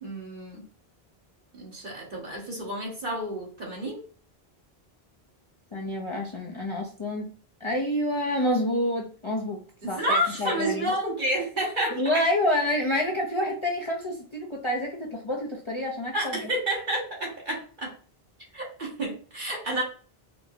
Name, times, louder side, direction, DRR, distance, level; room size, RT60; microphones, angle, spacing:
voice 1, 0.0-0.6 1.5-4.0 9.8-12.2 16.1-17.9 18.5-19.8, right 1 dB, 55° right, -2 dB, 1.5 m, -30 dB
voice 2, 5.7-7.3 7.6-9.6 9.9-10.9 12.0-16.4, left 1 dB, 35° left, -2 dB, 0.6 m, -28 dB
4.5 x 2.0 x 2.7 m, 0.41 s
omnidirectional pair, 1.0 m